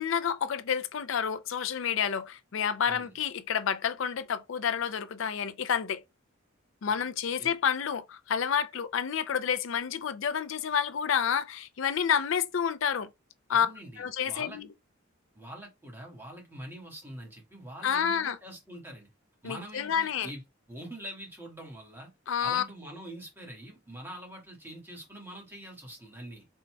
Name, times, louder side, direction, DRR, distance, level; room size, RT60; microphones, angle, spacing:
voice 1, 0.0-6.0 6.8-13.1 13.5-13.7 14.0-14.7 17.8-18.4 19.4-20.3 22.3-22.6, left 7 dB, 65° left, 0.4 m, -29 dB
voice 2, 13.5-14.6 15.3-19.1 19.4-20.4 20.7-22.1 22.4-26.5, right 1 dB, 10° right, 1.5 m, -44 dB
4.4 x 3.9 x 2.2 m
head